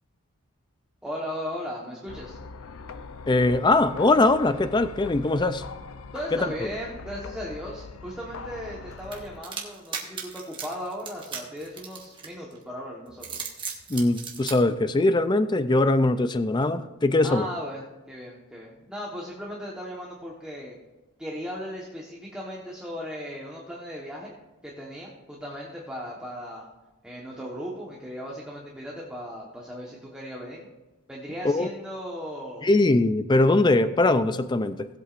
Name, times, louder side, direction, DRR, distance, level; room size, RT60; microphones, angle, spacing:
voice 1, 1.0-2.4 6.1-13.5 17.2-20.7 21.2-24.3 24.6-26.7 27.0-30.7 31.1-32.7, equal, 5° right, -4 dB, 1.2 m, -37 dB
sound 1, 2.1-9.4, left 4 dB, 70° left, 0.6 m, -42 dB
voice 2, 3.3-5.6 6.3-6.4 13.9-17.5 31.4-31.7 32.6-34.9, left 2 dB, 20° left, 12 dB, 0.4 m, -21 dB
sound 2, 9.1-12.6 13.1-14.6, right 6 dB, 20° right, 1.4 m, -36 dB
18.5 x 8.2 x 2.5 m, 1.1 s
head